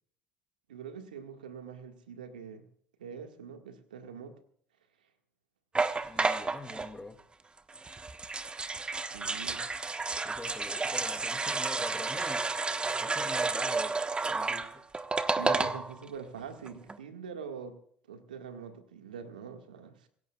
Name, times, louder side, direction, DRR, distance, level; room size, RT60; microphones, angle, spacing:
voice 1, 0.7-2.7 3.0-4.3 9.1-9.6 15.4-17.8 18.1-20.1, right 6 dB, 80° right, 1.8 m, -43 dB
sound 1, 5.8-6.9 7.7-16.1 16.4-16.5 16.7-17.0, right 3 dB, 20° right, 1.3 m, -31 dB
voice 2, 5.9-7.2 10.2-12.4 13.0-14.8 15.4-15.7, left 2 dB, 10° left, 2.3 m, -44 dB
26.5 x 16.5 x 2.4 m
hypercardioid pair, 65°, 5 cm